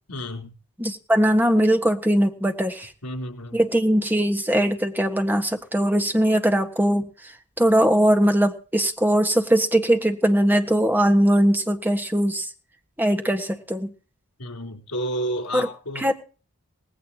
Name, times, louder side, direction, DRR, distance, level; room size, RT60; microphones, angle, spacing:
voice 1, 0.1-0.5 3.0-3.6 14.4-16.1, equal, 90° left, 5 dB, 4.0 m, -31 dB
voice 2, 0.8-2.9 3.5-7.3 7.6-12.5 13.0-13.9 15.5-15.7 16.0-16.1, equal, 10° right, 5 dB, 1.6 m, -20 dB
19.0 x 16.0 x 2.9 m, 0.37 s
head